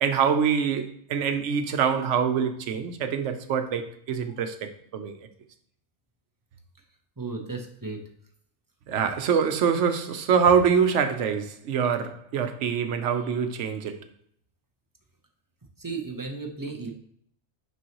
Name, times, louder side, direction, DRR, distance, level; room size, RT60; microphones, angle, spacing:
voice 1, 0.0-5.1 8.9-14.0, right 7 dB, 90° right, 1.0 m, -25 dB
voice 2, 7.2-8.0 15.8-16.9, right 4 dB, 20° right, 0.8 m, -34 dB
6.2 x 5.4 x 2.9 m
omnidirectional pair, 1.2 m